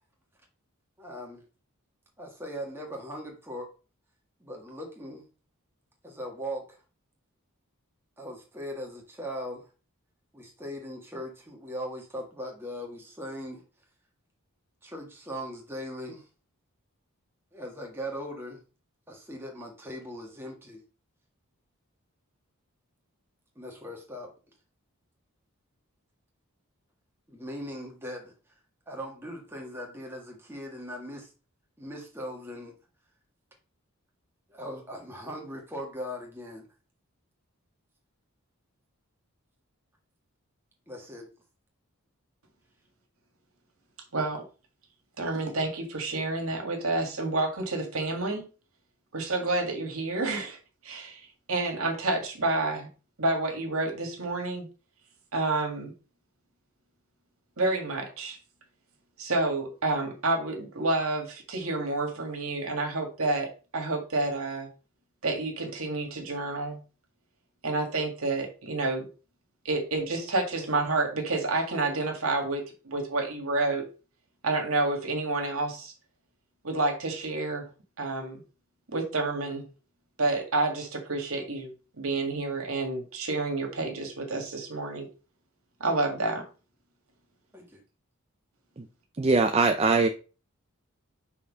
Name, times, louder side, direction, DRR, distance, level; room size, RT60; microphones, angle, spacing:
voice 1, 1.0-1.4 2.2-3.7 4.4-5.2 6.0-6.8 8.2-9.7 10.3-13.6 14.8-16.3 17.5-18.6 19.1-20.8 23.5-24.3 27.3-28.3 28.9-31.3 31.8-32.7 34.5-36.7 40.9-41.3 87.5-87.8, equal, 10° right, 1.7 m, -39 dB
voice 2, 44.1-44.4 45.2-48.5 49.1-50.6 50.8-52.9 53.2-54.7 55.3-55.9 57.6-58.4 59.2-64.7 65.2-66.8 67.6-69.1 69.6-73.9 74.4-75.9 76.6-77.7 78.0-78.4 78.9-79.7 80.2-85.1 85.8-86.5, right 2 dB, 75° right, 2.0 m, -29 dB
voice 3, 89.2-90.1, right 3 dB, 30° right, 0.5 m, -22 dB
5.9 x 4.2 x 5.4 m
head